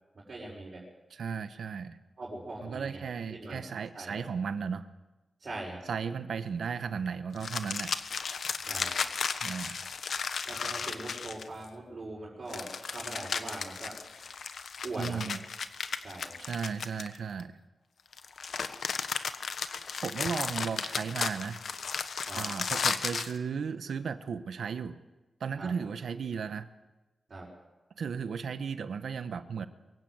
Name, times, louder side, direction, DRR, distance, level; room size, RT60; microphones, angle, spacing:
voice 1, 0.1-0.8 2.2-3.0 3.3-3.6 3.9-4.2 5.4-5.8 8.6-9.0 10.4-14.0 14.8-15.2 16.0-16.4 22.3-22.4 25.6-25.7 27.3-27.5, right 2 dB, 45° right, -5 dB, 5.5 m, -41 dB
voice 2, 1.1-2.0 2.6-4.9 5.9-7.9 9.4-9.8 15.0-15.4 16.4-17.6 20.0-21.6 22.3-25.0 25.4-26.7 28.0-29.7, right 6 dB, 85° right, 11 dB, 1.1 m, -35 dB
sound 1, 7.4-11.7 12.5-17.4 18.1-23.4, left 5 dB, 75° left, 1.2 m, -34 dB
23.5 x 16.0 x 8.0 m, 1.1 s
wide cardioid pair, 125°, 0 cm